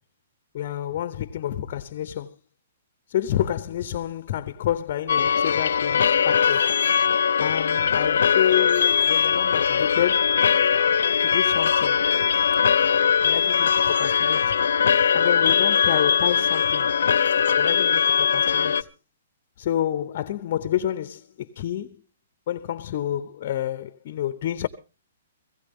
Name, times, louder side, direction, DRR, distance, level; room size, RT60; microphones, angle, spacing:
voice 1, 0.5-2.3 3.1-6.7 7.4-10.4 11.2-12.0 13.2-14.5 15.1-16.9 17.6-18.9 19.6-22.0 22.5-24.7, left 11 dB, 40° left, 0.7 m, -29 dB
sound 1, 5.1-18.8, left 7 dB, 80° left, 0.6 m, -21 dB
17.0 x 16.0 x 3.5 m
hypercardioid pair, 165°, 0 cm